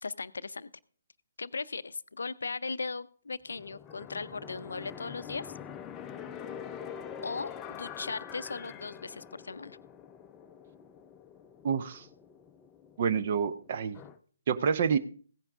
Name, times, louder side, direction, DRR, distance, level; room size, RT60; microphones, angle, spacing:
voice 1, 0.0-0.7 1.4-5.5 7.2-9.8, left 4 dB, 65° left, 16 dB, 0.5 m, -38 dB
sound 1, 3.5-14.2, left 8 dB, 15° left, 0.5 m, -45 dB
voice 2, 11.6-12.1 13.0-14.0 14.5-15.0, right 6 dB, 40° right, 12 dB, 0.7 m, -28 dB
16.0 x 10.0 x 3.6 m, 0.43 s
figure-of-eight pair, 135°, 0 cm